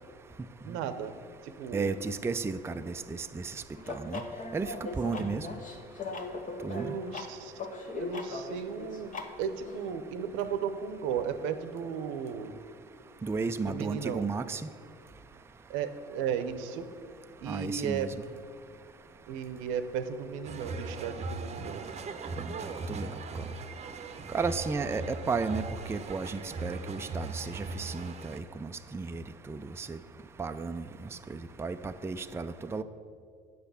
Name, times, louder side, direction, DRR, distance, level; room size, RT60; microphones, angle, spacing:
voice 1, 0.6-1.2 1.4-1.9 6.7-7.6 7.9-9.1 9.4-12.5 13.7-14.3 15.7-16.9 17.4-18.1 19.3-21.9, right 7 dB, 75° right, 10 dB, 0.8 m, -35 dB
voice 2, 1.7-3.5 3.9-4.2 4.5-5.5 6.6-6.9 13.2-14.6 17.5-18.1 22.4-22.5 22.9-23.1 24.3-30.0 30.4-30.9 31.3-32.8, right 4 dB, 15° right, 8 dB, 0.4 m, -33 dB
sound 1, 3.7-9.9, left 3 dB, 40° left, 1.2 m, -39 dB
sound 2, 20.4-28.4, right 3 dB, 35° right, 0.8 m, -39 dB
8.1 x 6.6 x 6.9 m, 2.2 s
supercardioid pair, 75°, 20 cm